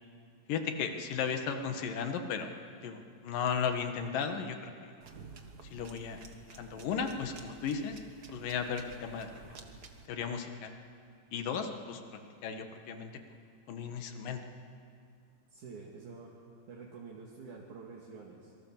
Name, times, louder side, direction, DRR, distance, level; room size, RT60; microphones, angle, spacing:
voice 1, 0.5-2.5 2.8-4.7 5.7-6.2 6.5-8.0 8.3-9.4 10.1-10.7 11.3-12.0 12.4-13.1 13.7-14.4, left 6 dB, 75° left, 6 dB, 3.2 m, -35 dB
sound 1, 5.0-10.1, right 4 dB, 45° right, 1.3 m, -51 dB
voice 2, 15.5-16.3 16.7-18.5, right 4 dB, 60° right, -2 dB, 3.6 m, -48 dB
26.5 x 23.5 x 7.4 m, 2.3 s
omnidirectional pair, 3.9 m